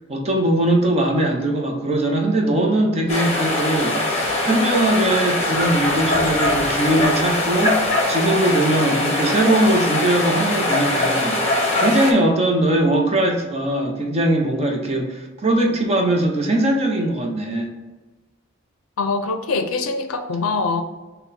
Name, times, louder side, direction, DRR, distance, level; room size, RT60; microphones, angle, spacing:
voice 1, 0.1-11.5 11.8-17.7, right 1 dB, 30° right, 1 dB, 0.7 m, -20 dB
sound 1, 3.1-12.1, left 2 dB, 30° left, 0.7 m, -21 dB
voice 2, 19.0-20.8, left 3 dB, 85° left, 7 dB, 0.5 m, -23 dB
5.6 x 2.2 x 4.2 m, 1.2 s
head